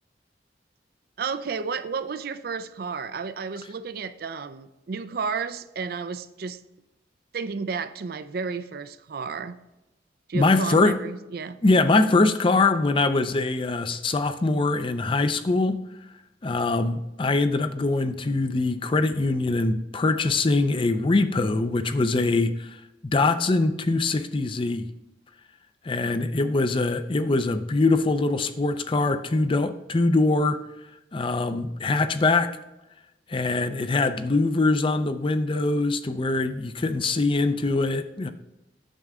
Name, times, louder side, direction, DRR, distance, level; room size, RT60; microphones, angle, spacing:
voice 1, 1.2-6.6 7.3-9.6 10.3-11.6, right 5 dB, 55° right, 0.4 m, -32 dB
voice 2, 10.3-11.0 11.6-15.8 16.4-24.8 25.8-30.6 31.1-32.5 33.3-38.3, left 3 dB, 30° left, 0.5 m, -23 dB
9.0 x 6.6 x 3.6 m
head